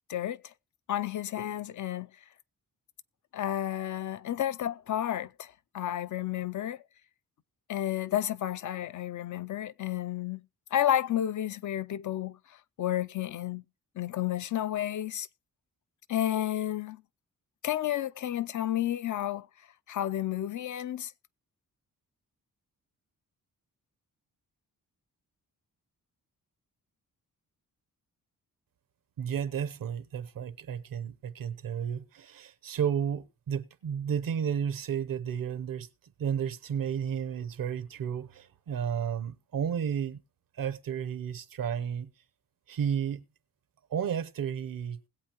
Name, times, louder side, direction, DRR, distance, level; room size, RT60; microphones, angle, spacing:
voice 1, 0.1-0.4 0.9-2.1 3.3-6.8 7.7-10.4 10.7-12.4 12.8-13.6 14.0-15.3 16.1-17.0 17.6-19.5 19.9-21.1, left 12 dB, 60° left, 0.5 m, -31 dB
voice 2, 29.2-35.9 36.2-40.2 40.6-42.1 42.7-43.2 43.9-45.0, right 8 dB, 70° right, 0.9 m, -32 dB
20.5 x 7.9 x 3.0 m
cardioid pair, 90°, 35 cm